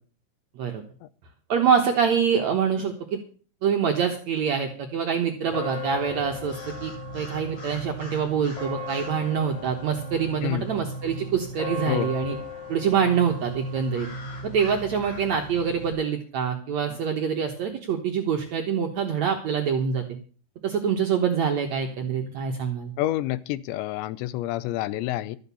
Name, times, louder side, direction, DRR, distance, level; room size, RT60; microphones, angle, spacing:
voice 1, 1.5-3.2 3.6-12.4 12.7-14.1 14.4-20.0 20.6-22.9, right 7 dB, 75° right, 2 dB, 1.6 m, -25 dB
sound 1, 5.5-15.9, left 1 dB, 40° left, 4.5 m, -36 dB
voice 2, 10.4-10.7 11.9-12.1 23.0-25.4, left 15 dB, 85° left, 18 dB, 3.0 m, -28 dB
13.5 x 8.0 x 7.0 m, 0.41 s
omnidirectional pair, 5.0 m